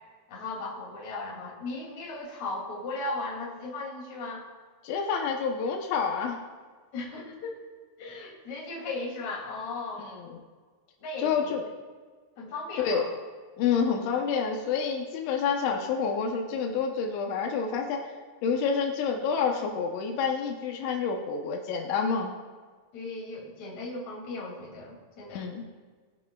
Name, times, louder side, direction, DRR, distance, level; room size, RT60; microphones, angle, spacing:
voice 1, 0.3-4.5 6.9-7.6 8.0-10.1 11.0-11.5 12.4-13.1 22.9-25.5, left 2 dB, 40° left, -3 dB, 3.4 m, -37 dB
voice 2, 4.8-6.4 10.0-10.4 11.2-11.6 12.8-13.0 13.6-18.1 18.4-22.3 25.3-25.6, left 6 dB, 85° left, 2 dB, 3.2 m, -28 dB
21.0 x 11.0 x 2.3 m, 1.5 s
omnidirectional pair, 5.3 m